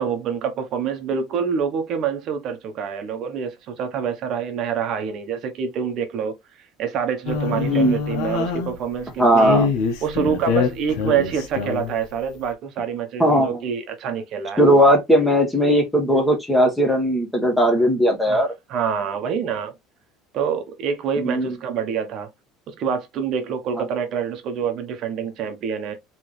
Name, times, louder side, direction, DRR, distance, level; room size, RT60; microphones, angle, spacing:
voice 1, 0.0-6.3 6.8-9.6 10.0-14.6 18.3-19.7 20.3-22.3 22.7-26.0, right 7 dB, 45° right, 1.1 m, -26 dB
sound 1, 7.3-9.0 9.4-12.0, left 5 dB, 75° left, 1.3 m, -24 dB
voice 2, 7.6-8.0 9.2-9.7 13.2-13.5 14.6-18.5 21.2-21.5, equal, 5° left, 1.5 m, -18 dB
4.7 x 3.3 x 3.2 m
cardioid pair, 145°, 0 cm